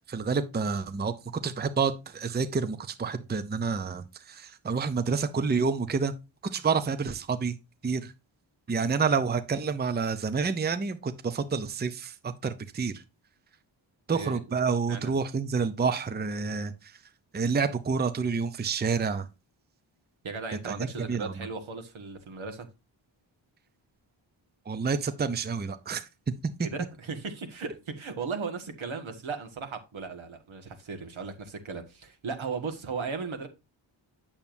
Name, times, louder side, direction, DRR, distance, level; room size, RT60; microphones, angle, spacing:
voice 1, 0.1-1.1 1.4-6.1 6.4-7.5 7.8-8.1 8.7-13.0 14.1-16.9 17.3-19.3 20.6-20.7 21.1-21.3 24.7-26.1, right 5 dB, 20° right, 0.6 m, -28 dB
voice 2, 20.2-22.7 26.6-33.5, right 4 dB, 80° right, 1.8 m, -36 dB
8.8 x 7.1 x 2.6 m
wide cardioid pair, 135°, 47 cm